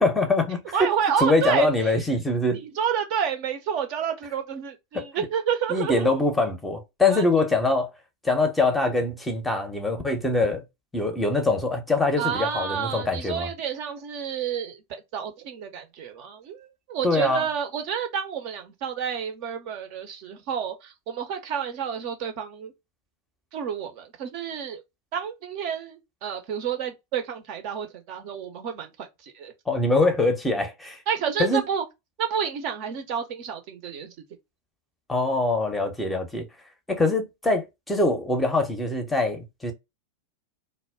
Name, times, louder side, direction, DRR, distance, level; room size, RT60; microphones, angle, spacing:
voice 1, 0.0-0.9 1.2-2.6 4.9-5.3 5.7-7.9 8.2-10.6 10.9-13.5 17.0-17.4 29.7-31.0 31.4-31.6 35.1-36.5 36.9-39.7, left 2 dB, 10° left, 0.6 m, -23 dB
voice 2, 0.7-1.9 2.5-6.1 7.1-7.2 12.2-14.8 15.1-22.7 23.5-24.8 25.1-29.5 31.1-31.8 32.2-34.1, right 8 dB, 45° right, 0.5 m, -29 dB
2.1 x 2.1 x 3.3 m
figure-of-eight pair, 90°, 0 cm